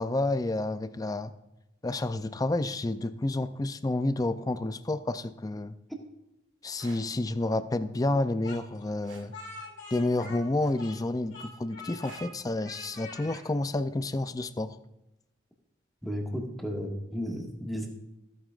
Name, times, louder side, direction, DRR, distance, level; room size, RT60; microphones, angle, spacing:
voice 1, 0.0-1.3 1.8-5.7 6.6-9.3 9.9-14.8, left 2 dB, 20° left, 12 dB, 0.4 m, -30 dB
sound 1, 6.7-7.0 9.0-9.3 10.6-11.0 12.0-12.4 13.8-13.9, right 3 dB, 85° right, 2.1 m, -49 dB
Speech, 8.4-11.1 11.3-12.3 12.6-13.4, left 3 dB, 65° left, 2.7 m, -44 dB
voice 2, 16.0-17.9, equal, ahead, -1 dB, 1.7 m, -34 dB
15.5 x 8.8 x 2.4 m, 0.94 s
head